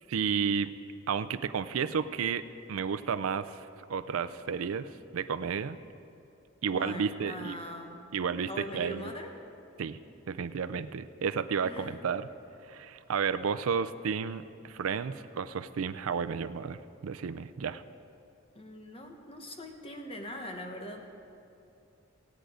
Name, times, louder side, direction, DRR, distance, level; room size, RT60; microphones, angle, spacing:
voice 1, 0.1-0.7 1.1-5.8 6.6-7.6 8.1-9.1 9.8-10.0 10.3-12.3 12.6-17.8, right 6 dB, 85° right, 13 dB, 0.4 m, -32 dB
voice 2, 6.7-8.0 8.4-9.3 11.6-12.0 18.5-21.0, equal, 30° left, 3 dB, 1.2 m, -41 dB
17.0 x 9.2 x 5.0 m, 2.8 s
head